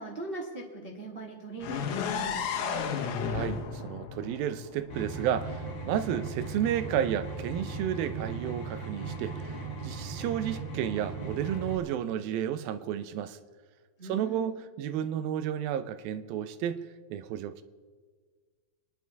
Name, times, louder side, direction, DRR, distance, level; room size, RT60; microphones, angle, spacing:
voice 1, 0.0-2.8 14.0-14.6, right 2 dB, 50° right, 0.6 m, -40 dB
sound 1, 1.6-5.5, left 7 dB, 70° left, 2.2 m, -33 dB
voice 2, 3.3-13.4 14.0-17.6, right 9 dB, 85° right, 2.6 m, -32 dB
sound 2, 4.9-11.7, right 4 dB, 35° left, 2.8 m, -38 dB
27.5 x 10.5 x 4.7 m
omnidirectional pair, 4.1 m